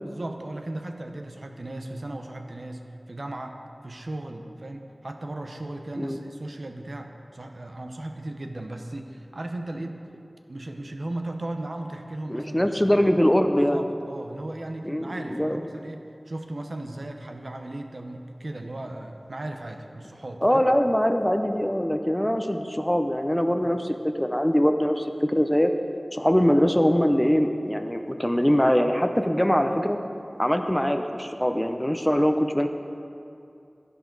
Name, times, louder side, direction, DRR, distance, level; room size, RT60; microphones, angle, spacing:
voice 1, 0.0-2.8 3.1-3.6 3.8-10.1 10.5-13.1 13.7-20.6 26.2-26.3, right 1 dB, 65° right, 4 dB, 0.8 m, -36 dB
voice 2, 12.3-13.8 14.8-15.7 20.4-25.7 26.1-30.0 30.4-32.7, equal, 10° left, 6 dB, 0.6 m, -22 dB
12.5 x 11.0 x 4.0 m, 2.6 s
wide cardioid pair, 55°, 0 cm